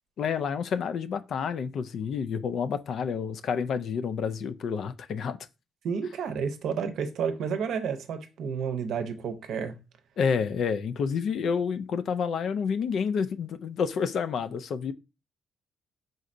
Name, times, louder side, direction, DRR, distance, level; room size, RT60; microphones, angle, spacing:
voice 1, 0.2-5.4 10.2-14.9, left 6 dB, 65° left, 0.3 m, -29 dB
voice 2, 5.8-9.8, right 6 dB, 75° right, 0.6 m, -31 dB
4.2 x 3.9 x 2.5 m
cardioid pair, 90°, 0 cm